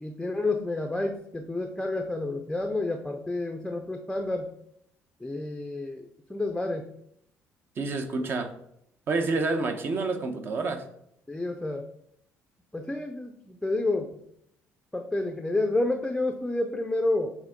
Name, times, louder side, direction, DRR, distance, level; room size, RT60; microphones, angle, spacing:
voice 1, 0.0-4.5 5.2-6.8 11.3-11.9 12.7-14.1 14.9-17.3, left 2 dB, 5° left, 5 dB, 0.5 m, -29 dB
voice 2, 7.8-8.5 9.1-10.8, right 3 dB, 45° right, 7 dB, 0.9 m, -28 dB
7.2 x 3.5 x 5.0 m, 0.73 s
cardioid pair, 135°, 5 cm